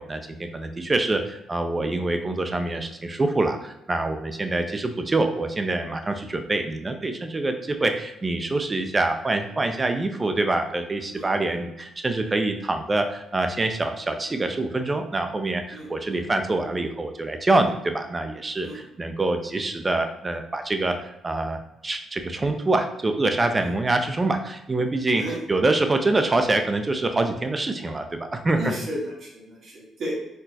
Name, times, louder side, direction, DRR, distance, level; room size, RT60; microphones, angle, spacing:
voice 1, 0.0-25.2 25.5-28.0 28.3-28.7, right 2 dB, 25° right, 6 dB, 0.4 m, -25 dB
voice 2, 11.1-11.5 15.7-16.2 18.6-18.8 23.6-23.7 25.1-25.4 28.6-30.1, equal, 55° right, -4 dB, 1.3 m, -34 dB
4.2 x 2.0 x 2.7 m, 0.90 s
cardioid pair, 90°, 0 cm